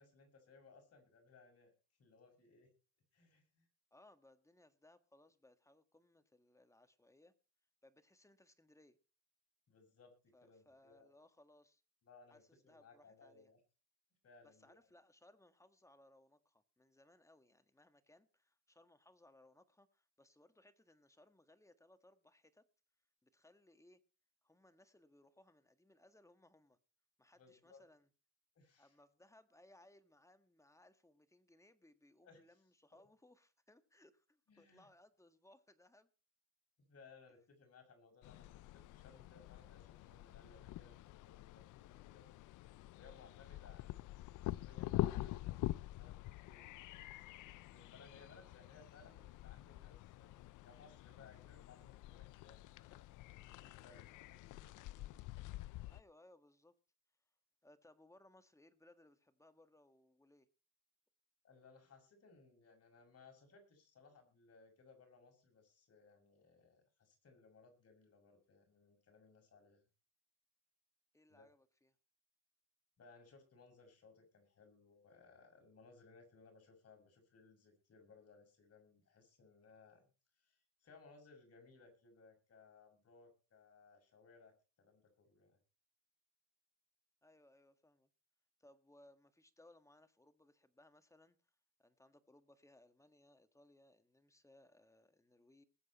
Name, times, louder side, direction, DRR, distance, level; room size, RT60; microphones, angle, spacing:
voice 1, 0.0-1.7 2.0-2.7 3.1-3.7 9.7-11.1 12.0-13.6 14.2-14.7 27.4-27.8 28.5-28.9 32.2-32.4 34.5-34.9 36.8-42.4 43.0-44.1 44.6-53.0 53.5-55.2 61.4-69.9 71.3-71.5 73.0-80.1 80.4-85.6, left 4 dB, 55° left, 6.3 m, -64 dB
voice 2, 3.9-7.3 7.8-9.0 10.3-11.8 12.3-13.5 14.4-22.7 23.2-24.0 24.4-26.8 27.2-28.1 28.8-36.1 53.7-54.1 55.9-56.8 57.6-60.5 71.1-72.0 87.2-88.1 88.6-91.4 91.8-95.6, left 1 dB, 10° left, 1.7 m, -66 dB
sound 1, 38.2-56.0, left 16 dB, 85° left, 0.6 m, -46 dB
20.5 x 8.3 x 4.2 m
cardioid pair, 90°, 30 cm